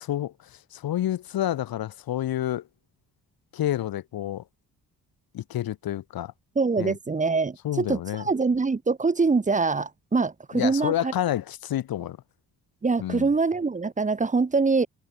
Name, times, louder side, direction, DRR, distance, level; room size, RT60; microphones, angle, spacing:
voice 1, 0.0-2.7 3.5-4.4 5.3-6.3 6.8-7.0 7.6-8.2 10.5-12.2 13.0-13.3, left 12 dB, 85° left, 3.3 m, -29 dB
voice 2, 6.6-11.1 12.8-14.9, right 4 dB, 20° right, 3.8 m, -24 dB
wide cardioid pair, 175°, 35 cm